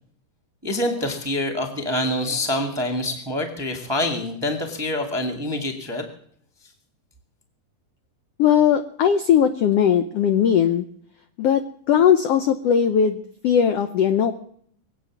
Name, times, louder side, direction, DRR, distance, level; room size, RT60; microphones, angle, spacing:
voice 1, 0.6-6.0, left 1 dB, 15° right, 4 dB, 1.0 m, -26 dB
voice 2, 8.4-10.8 11.4-11.6 11.9-14.3, left 8 dB, 75° left, 9 dB, 1.5 m, -19 dB
22.5 x 8.3 x 7.2 m, 0.65 s
omnidirectional pair, 3.7 m